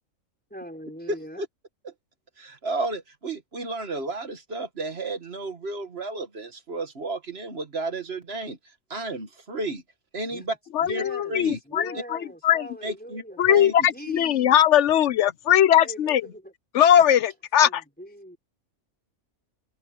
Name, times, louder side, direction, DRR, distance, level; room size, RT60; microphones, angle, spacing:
voice 1, 0.5-1.4 10.3-10.5 10.8-14.6 15.8-16.5 17.6-18.4, equal, 5° left, 4.2 m, -41 dB
voice 2, 1.1-1.5 1.8-1.9 2.4-8.6 8.9-9.8 10.1-10.6 10.9-11.0 11.3-11.6 12.8-13.7, right 2 dB, 45° right, 1.9 m, -32 dB
voice 3, 10.7-11.9 12.4-12.7 13.4-16.2 16.7-17.8, left 10 dB, 60° left, 0.9 m, -19 dB
omnidirectional pair, 1.5 m